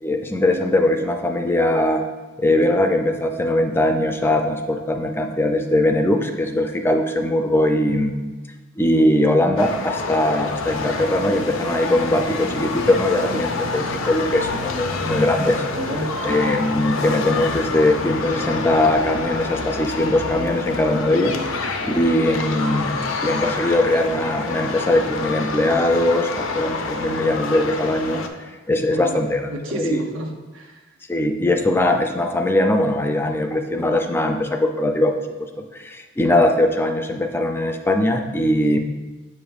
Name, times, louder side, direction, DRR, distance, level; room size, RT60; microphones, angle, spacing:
voice 1, 0.0-2.0 2.4-8.2 8.8-15.6 16.2-21.4 21.8-30.0 31.1-38.8, left 1 dB, 10° left, 5 dB, 0.3 m, -20 dB
sound 1, 9.6-28.3, left 3 dB, 85° left, 0.5 m, -27 dB
voice 2, 15.8-16.2 28.9-30.8, right 1 dB, 85° right, 2 dB, 0.8 m, -30 dB
8.0 x 5.1 x 2.4 m, 1.2 s
head